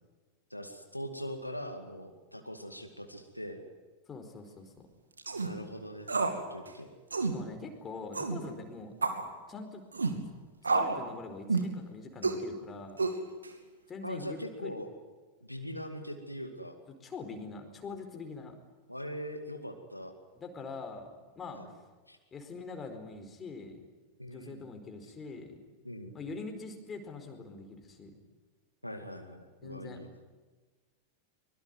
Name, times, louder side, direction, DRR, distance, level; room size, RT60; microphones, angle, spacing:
voice 1, 0.5-3.6 5.3-6.9 14.0-14.9 15.4-16.8 18.9-20.1 21.5-21.7 22.1-22.2 24.2-24.6 25.8-26.1 28.8-30.1, equal, 90° left, 5 dB, 2.3 m, -41 dB
voice 2, 4.1-4.7 7.3-8.9 9.5-9.8 10.7-13.0 13.9-14.7 17.0-18.6 20.3-21.1 21.3-21.6 22.3-23.8 24.3-25.6 26.1-28.1 29.6-30.0, left 4 dB, 20° left, 5 dB, 4.6 m, -43 dB
sound 1, 5.2-5.5 6.1-6.4 6.7-6.8 7.1-7.4 8.1-8.4 9.0-9.3 9.9-10.2 10.6-11.0 11.5-11.7 12.2-12.4 13.0-13.5, right 3 dB, 75° right, 2.6 m, -29 dB
24.0 x 22.5 x 9.5 m, 1.3 s
figure-of-eight pair, 90°, 0 cm